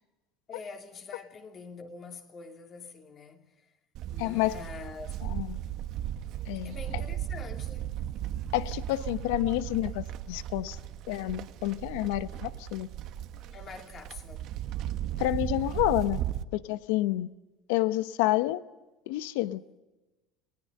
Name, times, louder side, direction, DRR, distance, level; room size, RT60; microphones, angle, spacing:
voice 1, 0.5-3.7 4.1-5.2 6.6-8.1 13.5-14.5, left 4 dB, 35° left, 3.3 m, -45 dB
Livestock farm animals working animals, 3.9-16.4, right 11 dB, 60° right, 1.4 m, -36 dB
voice 2, 4.2-4.6 5.2-5.6 6.5-6.8 8.5-10.8 11.1-12.9 15.2-16.2 16.5-17.3 17.7-18.6 19.1-19.6, left 16 dB, 80° left, 1.0 m, -29 dB
29.5 x 20.0 x 6.7 m
supercardioid pair, 120°, 0 cm